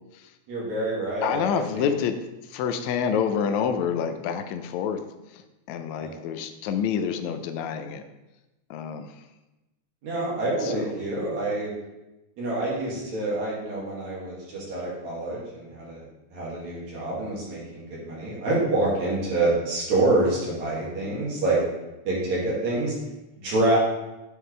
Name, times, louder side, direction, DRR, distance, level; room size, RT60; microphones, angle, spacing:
voice 1, 0.5-1.9 6.0-6.2 10.0-11.7 12.4-16.0 16.3-21.6 22.0-22.9 23.4-23.8, right 2 dB, 70° right, -6 dB, 3.4 m, -27 dB
voice 2, 1.2-2.2 2.5-5.4 5.7-8.0 8.7-9.1 10.6-10.9, left 7 dB, 80° left, 8 dB, 1.8 m, -28 dB
9.1 x 4.8 x 3.3 m, 1.0 s
omnidirectional pair, 3.4 m